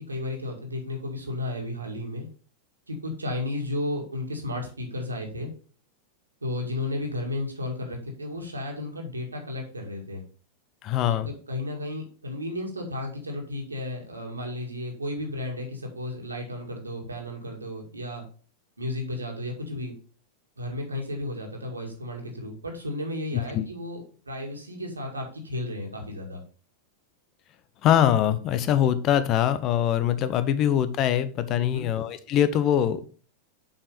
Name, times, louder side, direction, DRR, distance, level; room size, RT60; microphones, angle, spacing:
voice 1, 0.0-2.3 2.9-5.5 6.4-10.2 11.1-18.2 18.8-19.9 20.6-26.4 31.5-31.9, left 1 dB, 80° right, 2 dB, 2.3 m, -33 dB
voice 2, 10.8-11.3 23.5-23.7 27.8-33.0, left 10 dB, 35° left, 13 dB, 0.8 m, -23 dB
7.1 x 5.5 x 5.0 m, 0.39 s
figure-of-eight pair, 90°, 0 cm